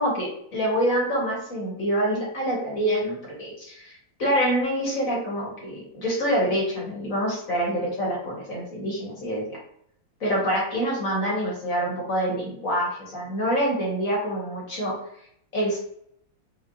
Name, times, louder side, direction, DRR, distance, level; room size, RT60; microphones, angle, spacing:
voice 1, 0.0-9.6 10.2-15.0 15.5-15.8, equal, 45° left, -4 dB, 1.8 m, -26 dB
4.6 x 4.0 x 2.8 m, 0.70 s
omnidirectional pair, 2.1 m